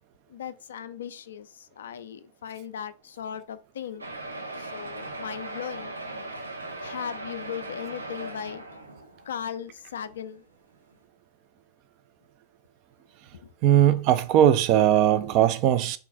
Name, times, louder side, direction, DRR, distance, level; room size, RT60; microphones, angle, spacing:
voice 1, 0.3-4.1 4.6-6.3 6.8-8.6 9.2-10.4 13.4-13.5, left 8 dB, 65° left, 0.3 m, -38 dB
sound 1, 4.0-9.4 10.1-10.2 10.5-10.6 10.9-11.0, right 2 dB, 80° right, 0.7 m, -38 dB
voice 2, 13.6-16.0, right 11 dB, 40° right, 0.4 m, -19 dB
3.7 x 2.3 x 4.5 m
figure-of-eight pair, 90°, 0 cm